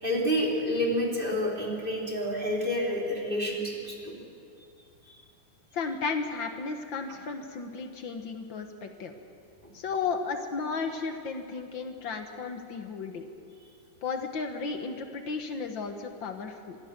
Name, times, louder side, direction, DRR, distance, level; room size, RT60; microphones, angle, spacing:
voice 1, 0.0-4.2 5.0-5.1, equal, 25° right, -2 dB, 3.8 m, -29 dB
voice 2, 5.7-9.1 9.7-13.3 14.0-16.8, left 4 dB, 70° left, 6 dB, 2.0 m, -34 dB
25.0 x 19.5 x 6.7 m, 2.5 s
omnidirectional pair, 2.1 m